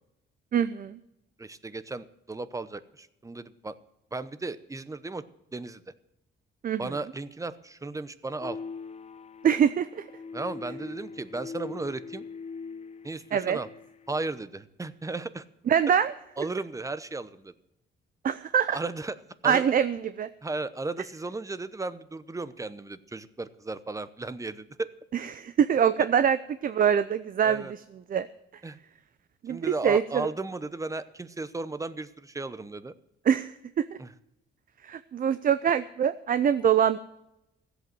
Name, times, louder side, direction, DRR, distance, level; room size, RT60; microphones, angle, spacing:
voice 1, 0.5-1.0 6.6-6.9 9.4-10.0 13.3-13.6 15.7-16.5 18.2-18.8 19.4-20.3 25.3-26.4 26.6-27.7 28.1-28.3 29.4-30.3 33.3-34.0 34.8-37.0, right 8 dB, 45° right, 13 dB, 0.6 m, -24 dB
voice 2, 1.4-3.8 4.1-5.2 5.5-5.8 6.8-8.6 10.3-12.2 13.0-13.7 14.1-15.4 16.4-17.5 18.7-19.7 20.4-24.9 26.0-26.1 27.4-27.7 28.6-28.8 29.5-32.9 34.0-34.1, right 3 dB, 15° right, 15 dB, 0.8 m, -35 dB
sound 1, 8.4-14.2, left 4 dB, 35° left, 0.8 m, -42 dB
15.0 x 8.2 x 7.7 m, 0.84 s
cardioid pair, 90°, 20 cm